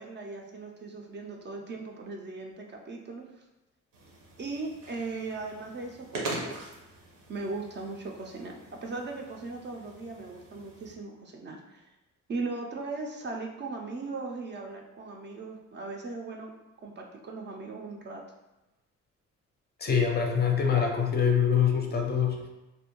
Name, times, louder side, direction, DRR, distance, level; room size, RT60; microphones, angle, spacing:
voice 1, 0.0-3.4 4.4-6.7 7.3-11.9 12.3-16.5 16.8-18.2, right 3 dB, 40° right, 1 dB, 0.4 m, -38 dB
sound 1, 3.9-10.9, right 2 dB, 90° right, 0.7 m, -42 dB
voice 2, 19.8-22.5, left 7 dB, 35° left, 1 dB, 0.4 m, -25 dB
2.5 x 2.1 x 2.9 m, 0.98 s
cardioid pair, 90°, 30 cm